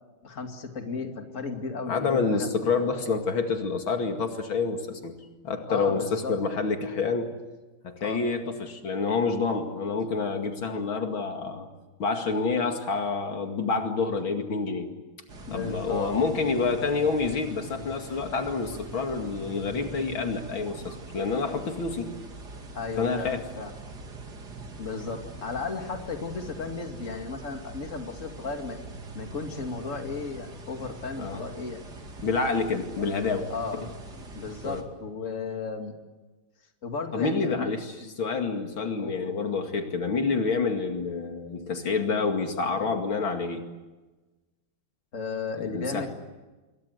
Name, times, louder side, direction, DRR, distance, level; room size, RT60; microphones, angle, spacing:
voice 1, 0.2-2.5 5.7-6.3 8.0-8.2 15.5-16.2 22.7-23.7 24.8-28.8 29.1-31.8 32.5-32.6 33.5-33.8 34.3-35.9 36.8-37.7 38.0-38.1 39.0-39.4 45.1-46.1, left 4 dB, 40° left, 4 dB, 2.7 m, -34 dB
voice 2, 1.9-5.2 5.4-7.3 7.8-11.7 12.0-14.9 15.5-22.2 23.0-23.4 31.2-31.4 32.2-33.5 34.6-34.8 37.1-43.6 45.6-46.1, left 4 dB, 75° left, 5 dB, 3.1 m, -28 dB
sound 1, 15.3-34.8, right 2 dB, 50° right, 3.2 m, -43 dB
28.0 x 23.0 x 8.1 m, 1.2 s
omnidirectional pair, 2.2 m